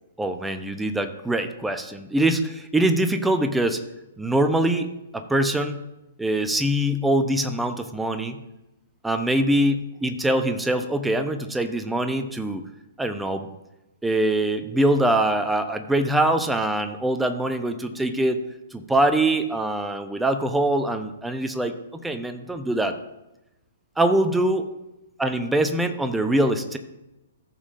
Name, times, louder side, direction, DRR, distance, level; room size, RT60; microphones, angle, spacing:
voice 1, 0.2-3.8 4.2-5.8 6.2-8.4 9.0-12.6 13.0-13.5 14.0-18.4 18.7-21.7 22.0-23.0 24.0-24.6 25.2-26.8, right 1 dB, 5° right, 8 dB, 0.7 m, -23 dB
15.0 x 7.3 x 2.6 m, 0.95 s
figure-of-eight pair, 120°, 0 cm